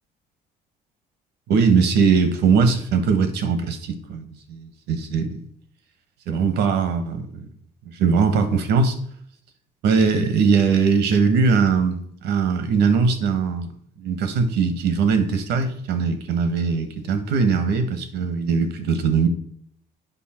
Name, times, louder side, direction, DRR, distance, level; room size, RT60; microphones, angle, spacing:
voice 1, 1.5-5.5 6.3-7.5 7.9-8.9 9.8-13.7 14.0-19.3, right 5 dB, 85° right, 9 dB, 1.3 m, -20 dB
8.3 x 5.4 x 4.4 m, 0.66 s
cardioid pair, 110°, 17 cm